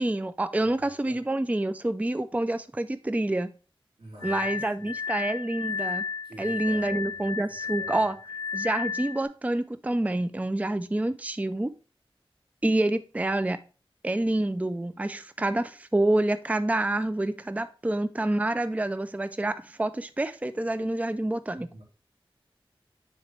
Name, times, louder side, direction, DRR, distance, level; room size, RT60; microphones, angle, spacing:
voice 1, 0.0-3.5 4.2-6.0 6.4-8.2 8.5-11.7 12.6-13.6 14.0-21.7, right 1 dB, 15° right, 0.4 m, -27 dB
voice 2, 0.6-1.2 4.0-4.9 6.2-8.1 21.6-21.8, equal, 85° right, 3.8 m, -48 dB
Glass, 4.2-9.2, left 6 dB, 35° left, 1.5 m, -33 dB
9.6 x 4.1 x 3.2 m
wide cardioid pair, 50°, 10 cm